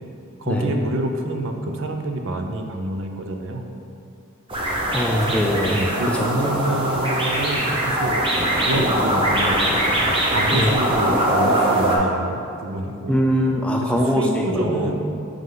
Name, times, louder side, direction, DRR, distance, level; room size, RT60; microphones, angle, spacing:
voice 1, 0.4-3.7 5.2-5.3 5.7-8.2 8.7-9.6 10.3-13.1 13.8-15.0, right 1 dB, 60° right, 4 dB, 0.6 m, -27 dB
sound 1, 4.5-12.0, right 1 dB, 25° right, 0.9 m, -21 dB
voice 2, 4.9-5.8 6.1-6.5 10.5-10.7 13.1-14.9, equal, 5° left, 0 dB, 0.3 m, -22 dB
6.2 x 5.4 x 3.8 m, 2.6 s
head